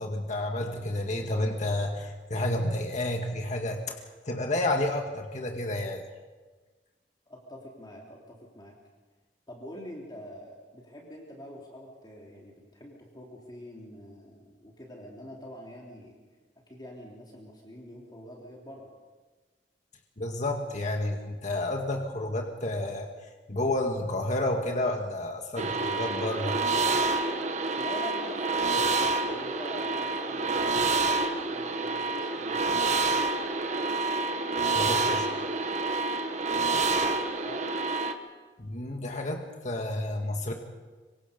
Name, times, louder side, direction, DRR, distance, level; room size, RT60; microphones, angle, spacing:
voice 1, 0.0-6.0 20.2-26.6 34.7-35.3 38.6-40.5, left 1 dB, 45° left, 2 dB, 1.9 m, -30 dB
voice 2, 7.3-8.7 9.5-16.2 16.7-18.9 27.8-32.6 37.4-37.7, equal, 25° left, -3 dB, 3.4 m, -44 dB
sound 1, 25.6-38.1, right 3 dB, 40° right, 1.4 m, -28 dB
26.5 x 24.0 x 5.3 m, 1.3 s
head